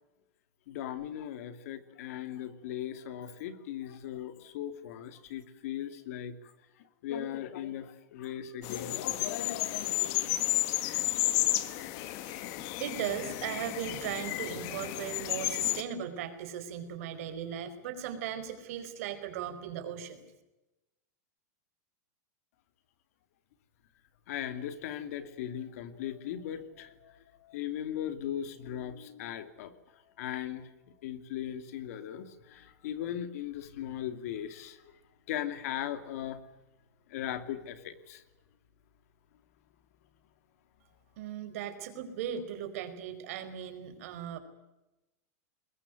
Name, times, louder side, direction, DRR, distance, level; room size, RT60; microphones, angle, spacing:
voice 1, 0.7-6.5 6.8-10.4 24.3-30.7 31.0-35.0 35.3-36.4 37.1-38.2, left 10 dB, 60° left, 10 dB, 2.6 m, -38 dB
sound 1, 8.6-15.8, left 16 dB, 40° left, 1.7 m, -32 dB
voice 2, 12.2-20.2 41.2-44.4, right 9 dB, 60° right, 8 dB, 4.9 m, -38 dB
22.5 x 21.0 x 9.3 m, 0.98 s
supercardioid pair, 160°, 9 cm